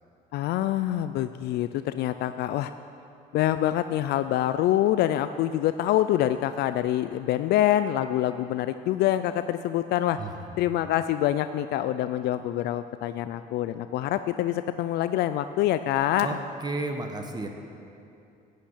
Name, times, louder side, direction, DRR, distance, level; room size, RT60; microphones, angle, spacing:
voice 1, 0.3-2.7 3.3-10.2 10.6-16.4, left 12 dB, 75° left, 11 dB, 0.4 m, -25 dB
voice 2, 16.6-17.5, right 2 dB, 25° right, 4 dB, 1.1 m, -32 dB
12.0 x 8.5 x 8.1 m, 2.7 s
cardioid pair, 110°, 17 cm